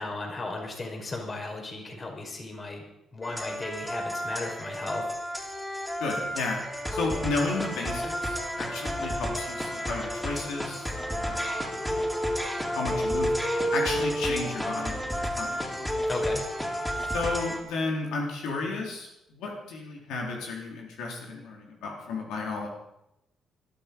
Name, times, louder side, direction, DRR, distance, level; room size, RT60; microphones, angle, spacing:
voice 1, 0.0-2.8 3.1-5.0 16.1-16.4, left 2 dB, 35° left, 2 dB, 5.2 m, -35 dB
sound 1, 3.2-17.6, equal, 5° left, 4.0 m, -31 dB
voice 2, 6.0-6.6 6.9-10.9 11.2-11.4 11.9-12.4 12.8-13.3 13.7-15.5 17.0-22.7, left 3 dB, 90° left, -1 dB, 4.0 m, -33 dB
21.0 x 12.5 x 5.4 m, 0.85 s
cardioid pair, 90°, 0 cm